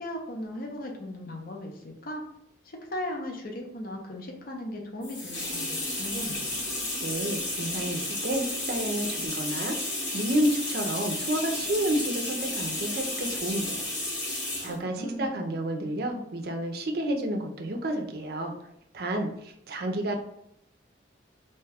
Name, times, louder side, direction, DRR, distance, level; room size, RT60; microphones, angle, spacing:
voice 1, 0.0-2.2 2.6-6.5 14.5-15.4, left 1 dB, 55° left, 1 dB, 0.6 m, -37 dB
sound 1, 5.0-14.8, left 1 dB, 85° left, 1.3 m, -32 dB
voice 2, 7.0-13.8 14.3-18.5 18.9-20.2, right 1 dB, 55° right, 3 dB, 0.5 m, -30 dB
2.8 x 2.2 x 3.3 m, 0.78 s
head